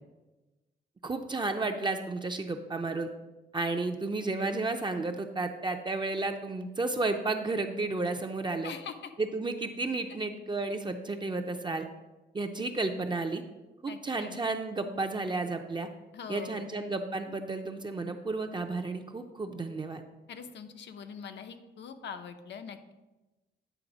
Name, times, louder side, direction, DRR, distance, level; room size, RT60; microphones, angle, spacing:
voice 1, 1.0-3.1 3.5-8.7 9.2-11.9 12.3-13.4 13.8-15.9 16.3-20.0, right 3 dB, 25° right, 5 dB, 0.5 m, -32 dB
voice 2, 8.6-9.1 13.9-14.4 16.1-16.6 20.3-22.9, left 6 dB, 80° left, 7 dB, 0.7 m, -43 dB
9.1 x 3.5 x 6.0 m, 1.1 s
wide cardioid pair, 120°, 18 cm